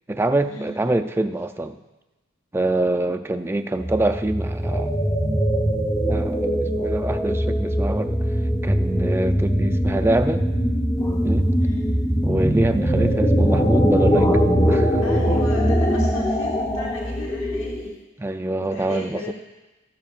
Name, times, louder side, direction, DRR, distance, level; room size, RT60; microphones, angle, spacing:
voice 1, 0.1-1.8 2.5-5.0 6.0-8.2 8.6-10.5 11.2-11.5 12.2-14.4 14.7-15.0 18.2-19.3, right 2 dB, 10° right, 8 dB, 0.3 m, -25 dB
sound 1, 3.8-17.9, equal, 15° left, 0.8 m, -21 dB
voice 2, 15.0-18.3 18.6-19.3, left 1 dB, 75° left, -2 dB, 1.2 m, -35 dB
14.0 x 12.0 x 2.4 m, 1.1 s
head